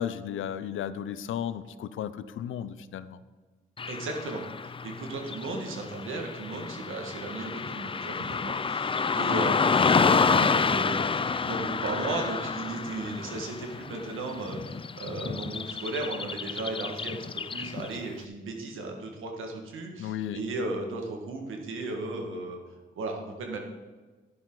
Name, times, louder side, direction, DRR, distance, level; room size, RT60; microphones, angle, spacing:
voice 1, 0.0-3.2 20.0-20.4, left 9 dB, 85° left, 14 dB, 0.6 m, -34 dB
Car passing by / Traffic noise roadway noise, 3.8-18.1, left 5 dB, 25° left, 0.4 m, -29 dB
voice 2, 3.9-22.6 23.0-23.6, right 2 dB, 85° right, 2 dB, 1.9 m, -35 dB
11.5 x 9.9 x 4.0 m, 1.3 s
cardioid pair, 65°, 20 cm